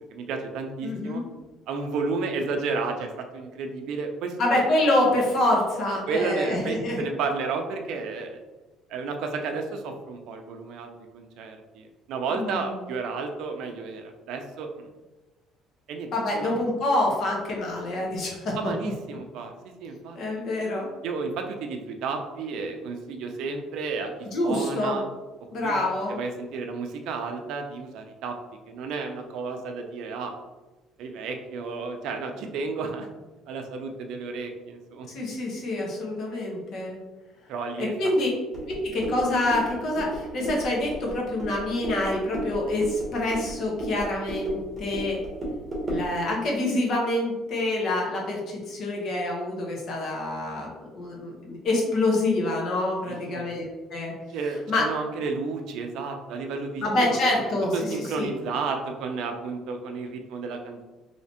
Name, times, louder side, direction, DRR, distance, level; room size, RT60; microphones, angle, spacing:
voice 1, 0.1-1.2 1.7-4.6 6.1-8.4 8.9-14.9 15.9-16.1 16.3-16.6 18.6-20.2 21.0-25.0 25.6-25.7 26.1-28.3 28.7-30.3 31.0-33.1 33.5-35.2 37.5-37.9 53.1-53.5 54.3-57.1 57.4-60.8, right 4 dB, 70° right, 4 dB, 0.5 m, -32 dB
voice 2, 0.8-1.3 4.4-7.0 12.3-12.7 16.1-18.6 20.1-20.9 24.3-25.0 25.5-26.1 35.1-37.0 37.8-38.3 38.7-45.2 45.9-54.1 54.7-54.8 56.8-57.7 58.2-58.3, left 1 dB, 50° left, -2 dB, 0.9 m, -26 dB
sound 1, 38.5-46.1, right 1 dB, 20° right, 1.0 m, -34 dB
3.2 x 2.8 x 2.8 m, 1.2 s
cardioid pair, 145°, 0 cm